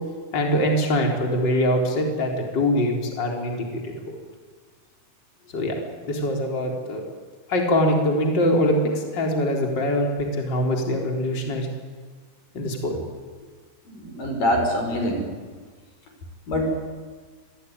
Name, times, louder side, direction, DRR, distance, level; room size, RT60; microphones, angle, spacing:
voice 1, 0.3-4.2 5.5-5.8 6.1-7.0 7.5-11.7 12.5-13.0, equal, 30° left, 1 dB, 4.3 m, -23 dB
voice 2, 13.9-15.3 16.5-16.9, equal, 90° left, 3 dB, 6.6 m, -24 dB
25.5 x 21.0 x 9.5 m, 1.5 s
omnidirectional pair, 3.8 m